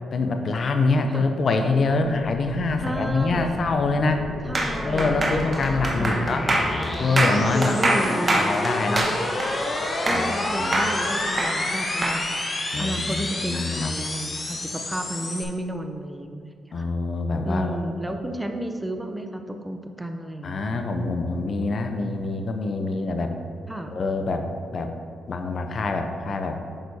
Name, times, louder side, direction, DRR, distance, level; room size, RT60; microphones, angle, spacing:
voice 1, 0.1-4.3 4.8-6.5 7.0-9.1 10.1-10.2 10.6-10.8 12.7-13.9 16.7-17.8 20.4-23.3 23.9-24.9 25.3-26.6, left 3 dB, 55° left, 6 dB, 0.7 m, -25 dB
sound 1, 2.1-15.4, left 2 dB, 35° left, 1.0 m, -30 dB
voice 2, 2.8-3.6 4.4-5.4 6.0-6.5 7.5-8.5 10.0-12.3 12.8-16.9 17.4-20.6 23.7-23.9, right 1 dB, 10° right, 5 dB, 0.6 m, -32 dB
sound 2, 4.6-10.4 10.7-12.2, right 1 dB, 35° right, 1.2 m, -24 dB
8.8 x 6.3 x 2.8 m, 2.2 s
cardioid pair, 65°, 0 cm